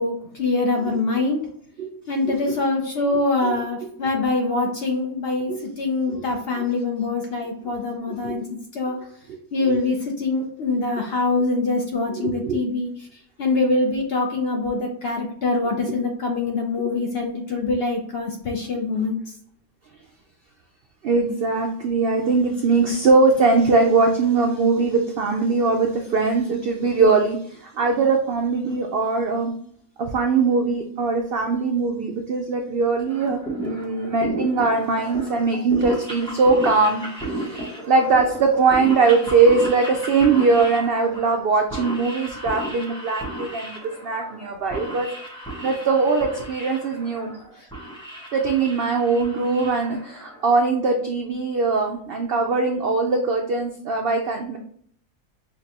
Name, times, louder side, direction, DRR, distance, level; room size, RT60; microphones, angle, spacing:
voice 1, 0.0-1.5 2.1-9.1 9.5-19.3 47.6-47.7, left 3 dB, 65° left, 2 dB, 0.6 m, -24 dB
voice 2, 2.3-2.6 3.4-3.6 5.5-5.6 6.1-6.2 6.6-6.7 8.1-8.5 9.3-9.4 9.7-9.8 12.1-12.6 21.0-29.5 30.0-43.7 44.0-45.1 45.6-47.3 48.3-54.6, right 4 dB, 80° right, 3 dB, 0.5 m, -21 dB
sound 1, 33.1-50.5, right 1 dB, 5° left, 0.7 m, -34 dB
5.9 x 2.1 x 2.8 m, 0.64 s
omnidirectional pair, 1.5 m